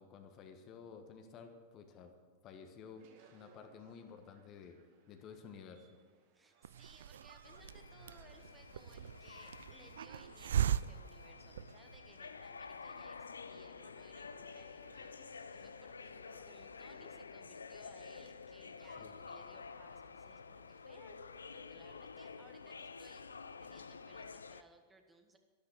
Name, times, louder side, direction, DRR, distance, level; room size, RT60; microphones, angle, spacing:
voice 1, 0.0-2.1 2.4-4.8 5.1-5.9 19.0-19.2, left 6 dB, 35° left, 6 dB, 1.5 m, -53 dB
sound 1, 3.0-17.2, right 6 dB, 50° right, 1.9 m, -69 dB
voice 2, 6.3-16.2 16.4-23.2 23.6-25.4, right 2 dB, 10° right, 5 dB, 1.4 m, -63 dB
Hiss, 6.6-12.1, right 10 dB, 65° right, 0.3 m, -39 dB
sound 2, 7.4-24.6, left 5 dB, 75° left, 0.5 m, -50 dB
12.5 x 12.5 x 6.1 m, 1.5 s
figure-of-eight pair, 90°, 0 cm